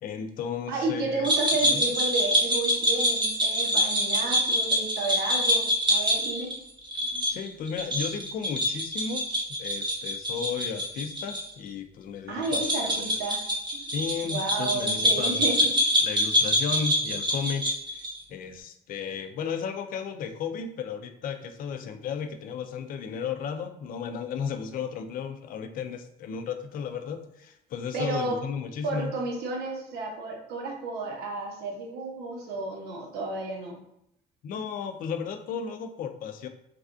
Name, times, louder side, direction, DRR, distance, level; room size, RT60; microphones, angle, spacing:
voice 1, 0.0-1.3 1.7-1.8 7.1-9.3 9.6-13.2 13.9-15.4 16.0-17.8 18.3-29.1 34.4-36.5, left 6 dB, 55° left, 8 dB, 0.4 m, -34 dB
voice 2, 0.7-6.5 12.3-13.4 13.7-13.8 14.2-15.7 27.9-28.3 28.8-33.8, right 3 dB, 75° right, -1 dB, 0.8 m, -32 dB
sound 1, 1.2-11.4 11.7-11.8 12.4-18.2, equal, 25° right, 0.8 m, -26 dB
3.3 x 2.4 x 2.5 m, 0.77 s
cardioid pair, 110°, 17 cm